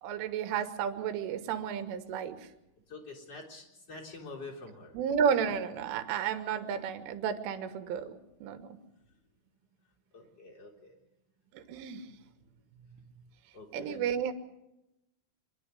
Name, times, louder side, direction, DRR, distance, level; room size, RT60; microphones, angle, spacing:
voice 1, 0.0-2.5 4.9-8.8 11.5-12.1 12.9-13.0 13.7-14.3, right 7 dB, 90° right, 8 dB, 3.8 m, -32 dB
voice 2, 2.9-4.9 10.1-10.7 13.5-14.1, left 3 dB, 35° left, 3 dB, 4.4 m, -46 dB
25.5 x 11.5 x 9.7 m, 0.94 s
omnidirectional pair, 5.5 m